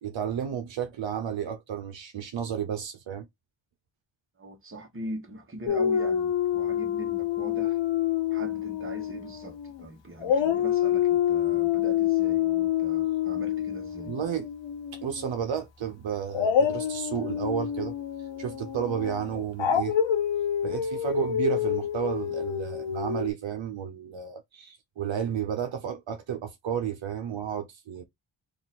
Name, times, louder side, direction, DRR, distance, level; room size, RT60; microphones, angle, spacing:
voice 1, 0.0-3.3 14.1-14.5 14.9-17.9 18.4-20.0 20.6-28.0, right 8 dB, 75° right, 0.8 m, -32 dB
voice 2, 4.4-7.8 8.3-14.2, right 1 dB, 25° right, 1.1 m, -41 dB
Dog, 5.7-9.8 10.2-15.2 16.3-23.3, left 9 dB, 75° left, 0.8 m, -27 dB
2.9 x 2.6 x 4.1 m
cardioid pair, 80°, 46 cm